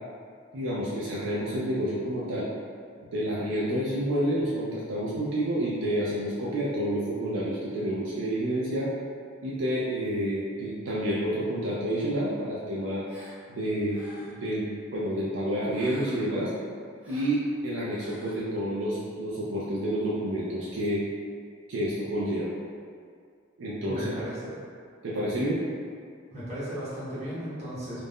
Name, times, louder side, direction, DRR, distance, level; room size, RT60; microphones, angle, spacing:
voice 1, 0.5-2.5 3.0-8.9 9.4-13.0 13.5-14.6 14.9-16.5 17.1-21.1 21.7-22.5 23.6-24.1 25.0-25.6, equal, 70° right, -7 dB, 0.4 m, -29 dB
Gasp, 13.1-13.4 13.9-14.5 15.7-16.4 17.0-17.4 17.9-18.4, equal, 10° right, 0.5 m, -48 dB
voice 2, 23.9-24.6 26.3-28.0, equal, 35° right, -10 dB, 0.9 m, -35 dB
2.5 x 2.1 x 3.5 m, 2.2 s
head